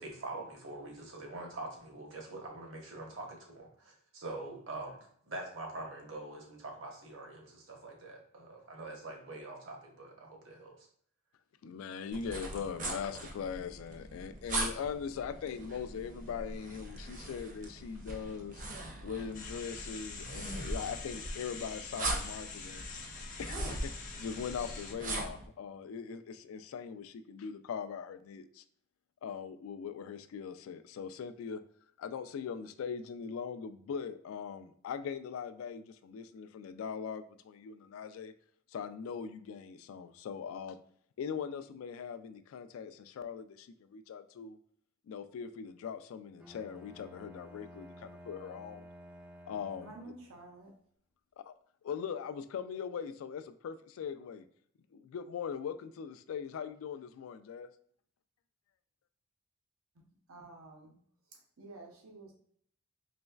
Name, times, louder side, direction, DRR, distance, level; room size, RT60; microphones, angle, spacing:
voice 1, 0.0-5.0 5.3-10.9, right 2 dB, 65° right, 1 dB, 1.0 m, -44 dB
voice 2, 11.6-18.6 19.0-22.8 23.4-28.6 29.2-31.6 32.0-38.3 38.7-40.8 41.2-44.6 45.1-48.9 49.5-49.9 51.4-51.5 51.8-54.5 54.9-57.7, left 6 dB, 80° left, 11 dB, 0.3 m, -41 dB
sound 1, 12.1-25.5, right 2 dB, 40° right, 0.6 m, -40 dB
sound 2, 19.3-24.9, left 5 dB, 40° left, 0.6 m, -46 dB
Bowed string instrument, 46.4-50.4, equal, 5° right, 0.3 m, -53 dB
voice 3, 49.8-50.7 59.9-61.0 61.2-62.3, right 2 dB, 90° right, 0 dB, 0.7 m, -51 dB
4.1 x 3.1 x 2.3 m, 0.63 s
head